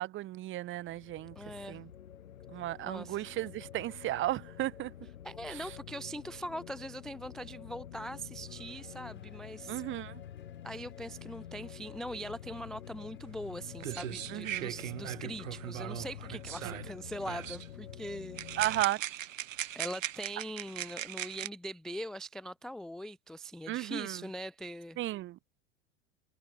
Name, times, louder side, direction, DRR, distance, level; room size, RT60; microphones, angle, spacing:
voice 1, 0.0-1.3 1.7-1.9 2.5-4.9 9.7-10.2 14.3-14.6 16.6-16.7 18.6-19.0 23.7-24.2 25.0-25.4, right 15 dB, 30° right, 0.7 m, -34 dB
sound 1, 0.7-18.9, left 10 dB, 75° left, 0.9 m, -48 dB
voice 2, 1.4-1.8 2.8-3.2 5.2-9.8 10.6-18.8 19.7-25.0, equal, ahead, 0.4 m, -42 dB
Cheering, 8.5-16.2 16.6-16.7 17.4-17.5, left 9 dB, 30° left, 6.9 m, -66 dB
sound 2, 13.5-13.6 13.8-16.9 17.2-17.7 18.4-21.5, right 12 dB, 70° right, 1.2 m, -39 dB
figure-of-eight pair, 80°, 40 cm